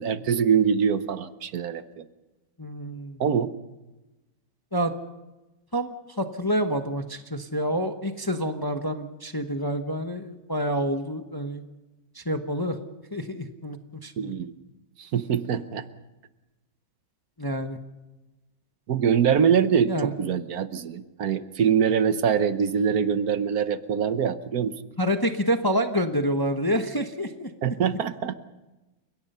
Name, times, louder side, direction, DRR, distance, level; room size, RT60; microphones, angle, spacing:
voice 1, 0.0-2.0 3.2-3.5 14.2-14.5 15.0-15.8 18.9-24.7 27.6-28.4, right 7 dB, 55° right, 12 dB, 1.2 m, -24 dB
voice 2, 2.6-3.2 4.7-4.9 5.7-5.9 6.2-11.6 12.1-12.8 13.1-14.3 17.4-17.8 19.9-20.1 25.0-27.5, equal, 15° left, 6 dB, 0.7 m, -27 dB
30.0 x 17.0 x 5.6 m, 1.1 s
omnidirectional pair, 2.2 m